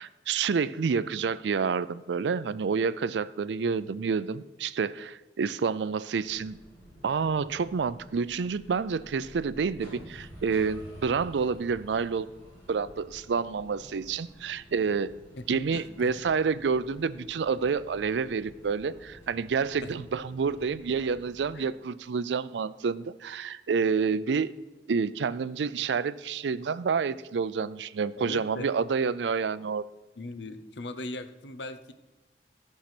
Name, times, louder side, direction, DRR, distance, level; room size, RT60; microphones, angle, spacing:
voice 1, 0.0-6.6 7.0-12.3 12.7-15.1 15.5-24.5 24.9-29.8, right 5 dB, 90° right, 16 dB, 0.4 m, -29 dB
sound 1, 6.2-21.6, equal, 15° left, 3.9 m, -51 dB
voice 2, 15.4-16.2 19.8-19.9 21.5-21.7 28.2-28.7 30.2-31.9, left 2 dB, 85° left, 11 dB, 0.8 m, -39 dB
13.0 x 5.7 x 6.0 m, 1.1 s
head